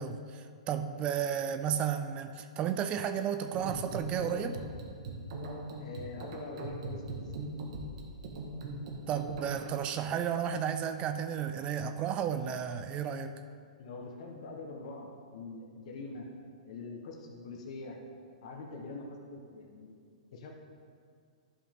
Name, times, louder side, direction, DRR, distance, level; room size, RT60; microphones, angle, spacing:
voice 1, 0.0-4.6 9.1-13.3, right 8 dB, 25° right, 9 dB, 0.4 m, -33 dB
sound 1, 3.5-9.6, right 2 dB, 55° right, 1.5 m, -40 dB
voice 2, 5.8-7.2 13.8-16.3 16.6-18.0 18.4-20.0 20.3-20.5, left 3 dB, 60° left, 0 dB, 1.2 m, -44 dB
11.0 x 5.3 x 3.7 m, 2.2 s
hypercardioid pair, 140°, 4 cm